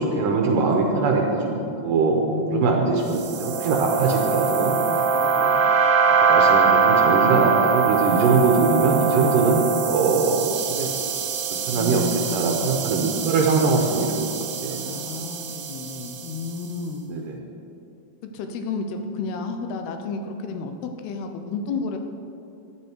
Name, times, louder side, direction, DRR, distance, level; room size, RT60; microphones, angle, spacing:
voice 1, 0.0-4.8 5.4-5.5 6.2-11.0 11.6-12.0 12.3-14.3 14.6-15.1 17.1-17.4, right 4 dB, 70° right, 1 dB, 2.2 m, -22 dB
voice 2, 2.3-2.8 4.9-5.5 11.8-12.6 14.8-17.1 18.3-22.0, left 4 dB, 80° left, 6 dB, 2.6 m, -31 dB
sound 1, 3.1-16.5, right 5 dB, 90° right, 1.8 m, -23 dB
13.5 x 9.9 x 4.5 m, 2.7 s
omnidirectional pair, 4.7 m